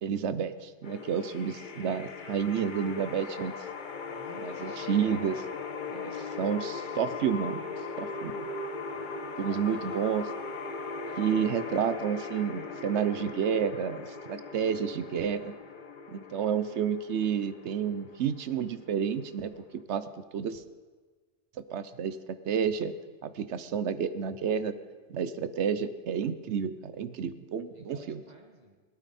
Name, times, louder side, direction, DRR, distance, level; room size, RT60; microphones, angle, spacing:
voice 1, 0.0-3.5 4.4-5.4 5.9-6.1 6.4-7.6 8.0-8.5 9.4-10.2 11.2-15.5 16.1-19.5 19.9-20.0 20.3-20.6 21.7-22.2 22.5-22.9 23.2-24.7 25.1-28.2, right 7 dB, 75° right, 13 dB, 1.0 m, -30 dB
sound 1, 0.8-19.8, left 4 dB, 45° left, 1.0 m, -39 dB
voice 2, 4.1-5.0 5.8-6.5 8.9-10.1 11.0-11.3 27.7-28.8, right 2 dB, 40° right, 2 dB, 1.2 m, -52 dB
17.5 x 12.5 x 4.2 m, 1.4 s
omnidirectional pair, 1.2 m